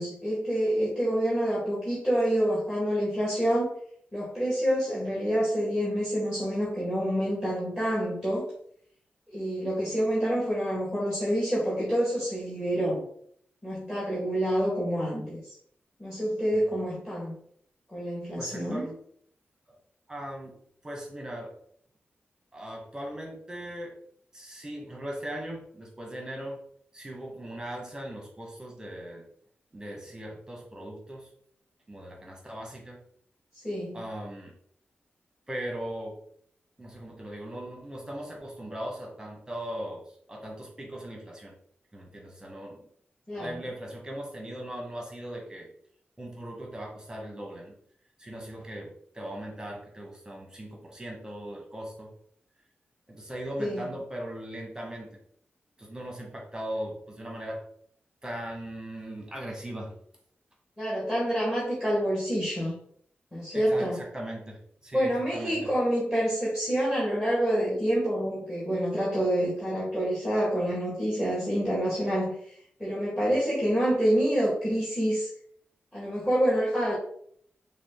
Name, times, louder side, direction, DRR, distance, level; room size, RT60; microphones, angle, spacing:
voice 1, 0.0-3.7 4.1-8.4 9.3-13.0 13.6-15.4 16.0-17.3 17.9-18.8 33.6-34.0 43.3-43.5 53.6-53.8 60.8-62.7 63.3-64.0 64.9-72.3 72.8-75.3 75.9-77.0, equal, 10° left, -7 dB, 1.6 m, -27 dB
voice 2, 18.4-19.0 19.7-19.8 20.1-20.5 20.8-21.5 22.5-23.9 24.3-26.6 26.9-29.2 29.7-31.3 31.9-33.0 33.9-34.5 35.5-36.2 36.8-41.6 41.9-42.9 43.3-45.7 46.2-47.7 48.2-52.1 53.1-55.2 55.8-57.6 58.2-60.0 63.5-65.7, right 1 dB, 15° right, 0 dB, 1.2 m, -39 dB
6.1 x 2.4 x 3.7 m, 0.64 s
wide cardioid pair, 145°, 4 cm